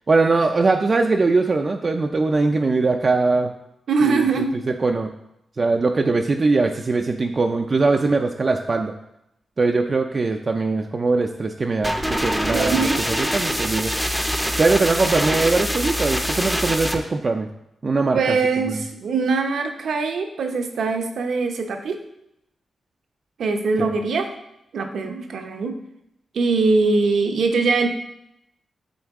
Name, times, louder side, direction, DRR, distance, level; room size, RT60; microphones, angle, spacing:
voice 1, 0.1-3.5 4.0-4.3 4.7-5.1 5.6-8.9 9.6-13.9 14.6-17.5 17.8-18.4 18.6-18.8, right 3 dB, 40° right, 3 dB, 0.4 m, -21 dB
voice 2, 3.9-4.5 12.5-13.0 18.1-22.0 23.4-24.3 24.7-25.7 26.3-27.9, right 4 dB, 75° right, 4 dB, 0.8 m, -22 dB
sound 1, 11.8-17.0, equal, ahead, 0.6 m, -24 dB
7.8 x 3.9 x 3.6 m, 0.81 s
cardioid pair, 95°, 0 cm